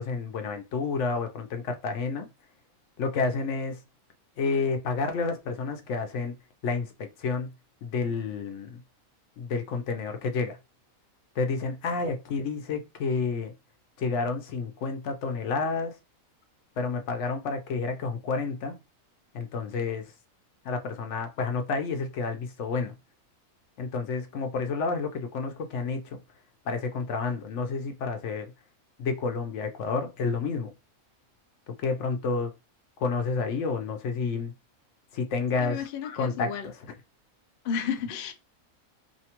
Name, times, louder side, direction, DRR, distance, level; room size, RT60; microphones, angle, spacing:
voice 1, 0.0-2.3 3.0-3.8 4.4-6.3 6.6-7.5 7.8-8.8 9.4-10.6 11.4-13.5 14.0-15.9 16.8-18.8 19.3-20.1 20.6-22.9 23.8-26.2 26.7-28.5 29.0-30.7 31.7-32.5 33.0-34.5 35.1-35.9 36.2-36.7, left 4 dB, 65° left, 0.9 m, -30 dB
voice 2, 35.6-36.7 37.6-38.3, left 7 dB, 80° left, 0.4 m, -32 dB
2.8 x 2.3 x 2.8 m
omnidirectional pair, 1.5 m